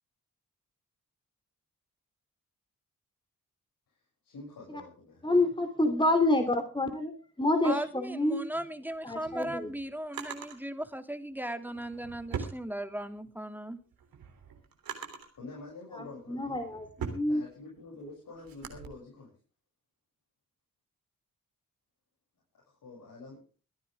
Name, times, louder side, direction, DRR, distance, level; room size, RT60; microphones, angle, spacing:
voice 1, 4.2-5.2 15.4-16.6 17.3-19.3 22.8-23.4, left 3 dB, 75° left, -3 dB, 6.9 m, -47 dB
voice 2, 5.2-8.4 9.0-9.7 16.0-17.4, left 2 dB, 15° left, 6 dB, 3.2 m, -28 dB
voice 3, 7.6-13.8, right 1 dB, 5° right, 8 dB, 2.5 m, -37 dB
Drawer open or close, 8.9-10.6 11.6-13.3 13.7-15.4 16.0-18.9, right 6 dB, 90° right, 3.3 m, -42 dB
24.0 x 10.5 x 3.5 m, 0.38 s
cardioid pair, 50°, 34 cm